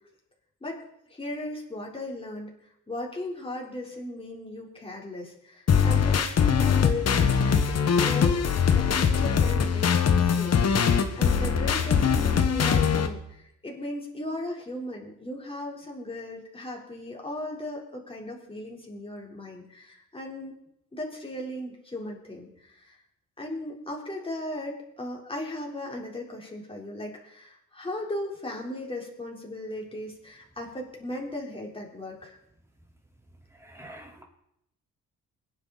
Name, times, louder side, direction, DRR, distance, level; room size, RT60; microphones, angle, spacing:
voice 1, 1.1-2.5 2.9-8.4 8.7-20.6 20.9-22.9 23.4-32.4, left 1 dB, 15° left, -1 dB, 4.0 m, -37 dB
sound 1, 5.7-13.1, left 7 dB, 50° left, 1.4 m, -22 dB
voice 2, 33.6-34.2, right 1 dB, 10° right, 0 dB, 4.0 m, -45 dB
24.0 x 10.0 x 4.1 m, 0.77 s
cardioid pair, 100°, 32 cm